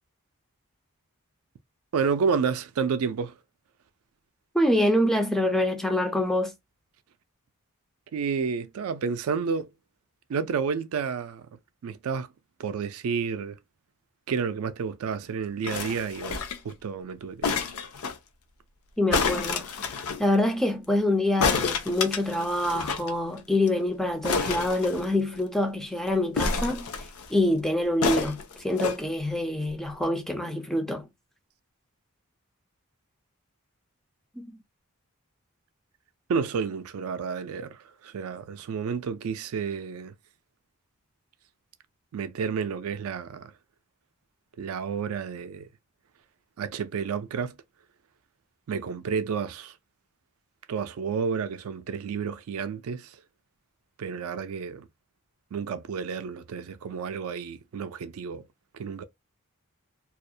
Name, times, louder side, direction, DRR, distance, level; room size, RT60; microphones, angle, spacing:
voice 1, 1.9-3.4 8.1-9.7 10.3-12.3 12.6-13.6 14.3-17.6 36.3-40.1 42.1-43.5 44.6-45.7 46.6-47.6 48.7-49.8 50.7-53.2 54.0-54.9 55.5-58.4 58.7-59.0, right 6 dB, 70° right, 0.4 m, -30 dB
voice 2, 4.5-6.5 19.0-26.9 27.3-31.1 34.4-34.5, left 1 dB, ahead, 0.3 m, -26 dB
sound 1, 15.6-16.7 17.4-18.2 19.1-20.2 21.4-23.1 23.4-23.5 23.7-23.8 24.2-25.4 26.4-27.3 28.0-29.0 29.7-29.8, left 5 dB, 70° left, 0.5 m, -29 dB
2.3 x 2.1 x 2.6 m
head